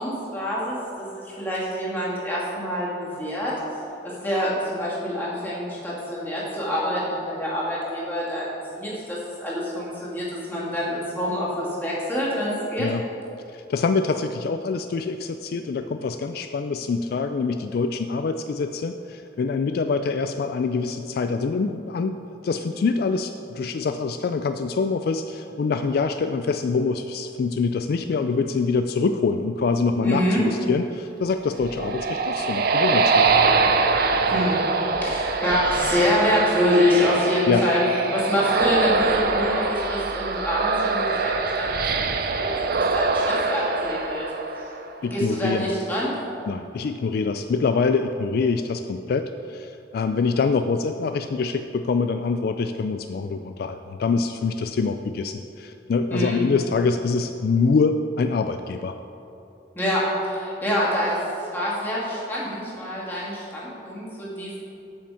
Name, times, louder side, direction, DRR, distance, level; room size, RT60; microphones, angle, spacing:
voice 1, 0.0-3.5 4.0-12.9 30.0-30.4 34.3-34.6 35.0-37.8 38.1-44.2 44.6-44.7 45.0-46.2 56.1-56.4 59.7-64.6, equal, 10° left, -7 dB, 2.5 m, -26 dB
voice 2, 13.5-33.3 37.5-37.6 45.0-45.7 46.5-59.0, left 4 dB, 55° left, 8 dB, 0.3 m, -25 dB
sound 1, 31.4-45.0, right 4 dB, 55° right, 0.6 m, -23 dB
8.5 x 6.1 x 6.9 m, 2.9 s
head